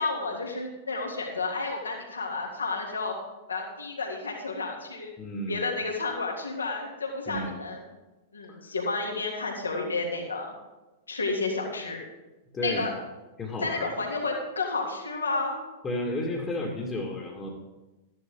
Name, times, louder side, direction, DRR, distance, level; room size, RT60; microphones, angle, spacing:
voice 1, 0.0-3.2 3.5-5.1 5.5-7.8 8.3-10.5 11.1-12.0 12.6-12.9 13.6-15.6, left 3 dB, 80° left, 0 dB, 3.1 m, -31 dB
voice 2, 5.2-5.7 7.3-7.6 8.5-8.6 12.5-12.9 13.4-13.9 15.8-17.5, left 1 dB, 20° left, 0 dB, 2.2 m, -32 dB
14.0 x 11.0 x 3.9 m, 1.1 s
figure-of-eight pair, 95°, 0 cm